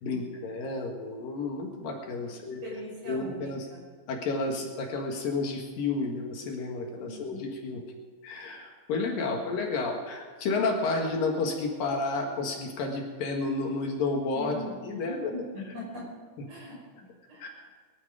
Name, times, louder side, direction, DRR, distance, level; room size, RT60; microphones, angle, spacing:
voice 1, 0.0-2.6 3.1-3.7 4.1-7.8 8.2-15.3 17.4-17.5, left 3 dB, 70° left, 2 dB, 3.2 m, -31 dB
voice 2, 2.6-3.8 7.0-7.6 14.3-16.1 16.5-17.8, left 1 dB, 45° right, -3 dB, 6.3 m, -42 dB
22.5 x 11.5 x 5.0 m, 1.5 s
omnidirectional pair, 4.3 m